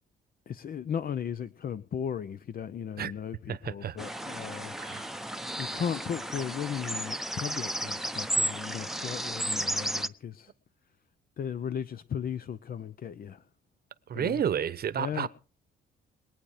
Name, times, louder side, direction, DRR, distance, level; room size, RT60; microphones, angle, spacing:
voice 1, 0.5-4.8 5.6-10.5 11.4-13.4 14.1-14.4 15.0-15.3, left 8 dB, 50° left, 0.6 m, -36 dB
voice 2, 3.5-4.0 4.8-5.2 14.1-15.3, right 8 dB, 50° right, 1.0 m, -31 dB
sound 1, 4.0-10.1, right 1 dB, ahead, 0.8 m, -33 dB
21.5 x 8.8 x 5.0 m
cardioid pair, 90°, 20 cm